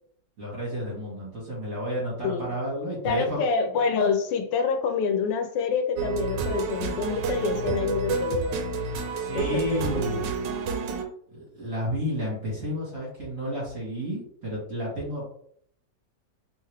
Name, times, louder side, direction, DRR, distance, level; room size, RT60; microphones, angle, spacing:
voice 1, 0.4-3.4 9.2-10.3 11.3-15.2, equal, 50° right, -6 dB, 1.7 m, -31 dB
voice 2, 3.0-8.7 9.3-9.8, left 5 dB, 90° left, 7 dB, 1.2 m, -27 dB
sound 1, 6.0-11.0, right 4 dB, 85° right, 1.3 m, -29 dB
3.7 x 3.2 x 3.2 m, 0.63 s
omnidirectional pair, 1.9 m